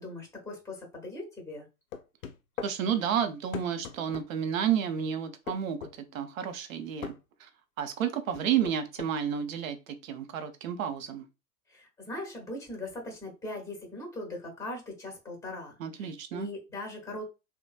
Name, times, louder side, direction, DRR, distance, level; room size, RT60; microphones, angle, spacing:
voice 1, 0.0-1.7 11.7-17.2, left 2 dB, 5° left, 1.1 m, -40 dB
sound 1, 1.9-2.8 3.5-4.3 5.5-6.0 7.0-7.2 8.3-9.1, left 7 dB, 65° left, 0.5 m, -39 dB
voice 2, 2.6-7.5 7.8-11.2 15.8-16.5, right 8 dB, 65° right, 0.7 m, -31 dB
3.0 x 2.1 x 2.4 m
figure-of-eight pair, 90°, 44 cm